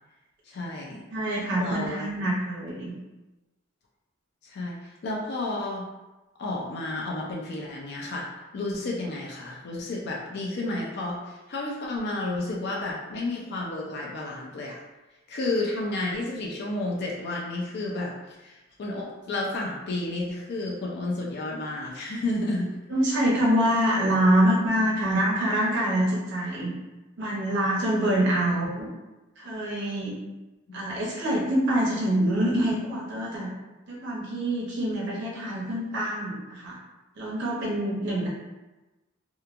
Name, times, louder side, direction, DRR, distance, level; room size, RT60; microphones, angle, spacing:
voice 1, 0.5-1.0 1.6-2.1 4.4-5.9 6.4-8.3 8.5-14.8 15.3-22.8 28.5-28.6 30.7-30.8, left 2 dB, 55° left, -2 dB, 0.4 m, -31 dB
voice 2, 1.1-3.0 22.9-26.7 27.2-28.8 29.4-30.2 30.7-33.5 33.9-36.8 37.2-38.3, right 1 dB, 60° right, -5 dB, 0.6 m, -25 dB
2.9 x 2.2 x 2.4 m, 1.1 s
head